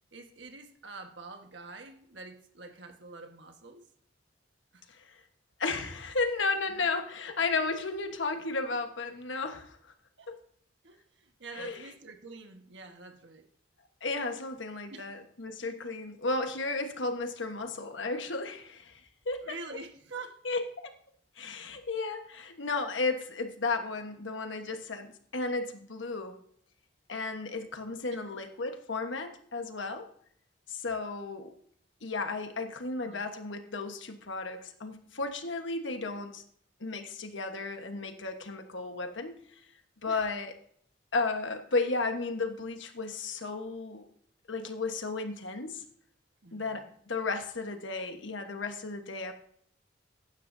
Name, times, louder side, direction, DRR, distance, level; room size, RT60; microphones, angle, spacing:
voice 1, 0.1-3.9 4.7-4.9 6.7-6.9 7.6-7.7 9.5-9.6 10.2-10.4 10.8-13.5 14.9-15.0 15.8-15.9 19.4-20.4 28.1-28.2 33.0-33.2 40.1-40.2 46.4-46.9, right 3 dB, 75° right, 5 dB, 1.4 m, -46 dB
voice 2, 4.9-5.2 5.6-9.8 10.3-10.4 11.6-11.8 14.0-19.0 19.2-19.5 20.4-20.9 21.4-26.4 27.1-30.1 30.7-31.5 32.0-36.4 36.8-39.4 40.0-40.5 41.1-44.1 44.5-45.8 46.5-49.3, left 3 dB, 85° left, 6 dB, 1.3 m, -34 dB
16.0 x 11.5 x 2.7 m, 0.64 s
head